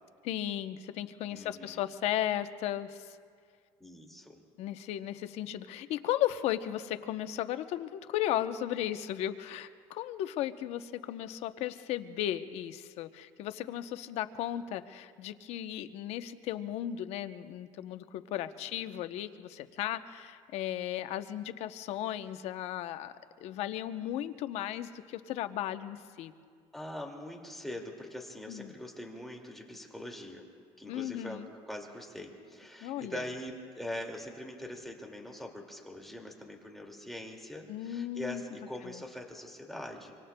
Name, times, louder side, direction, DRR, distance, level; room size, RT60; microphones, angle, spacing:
voice 1, 0.2-3.2 4.6-26.3 28.5-28.7 30.9-31.5 32.8-33.2 37.7-38.4 38.8-39.0, left 12 dB, 70° left, 11 dB, 0.7 m, -35 dB
voice 2, 1.3-1.8 3.8-4.4 18.4-18.5 26.7-30.5 30.8-40.2, left 1 dB, ahead, 1 dB, 2.1 m, -43 dB
25.5 x 25.0 x 2.2 m, 2.1 s
cardioid pair, 105°, 11 cm